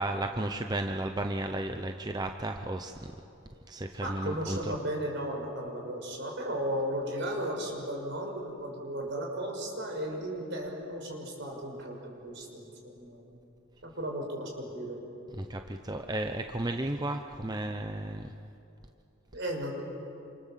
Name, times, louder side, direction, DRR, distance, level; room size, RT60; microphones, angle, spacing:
voice 1, 0.0-3.1 3.7-4.6 15.4-18.3, right 1 dB, 20° right, 5 dB, 0.8 m, -33 dB
voice 2, 4.0-13.4 13.8-15.0 19.3-19.7, right 1 dB, 60° right, 1 dB, 5.9 m, -35 dB
28.0 x 26.5 x 7.6 m, 2.8 s
head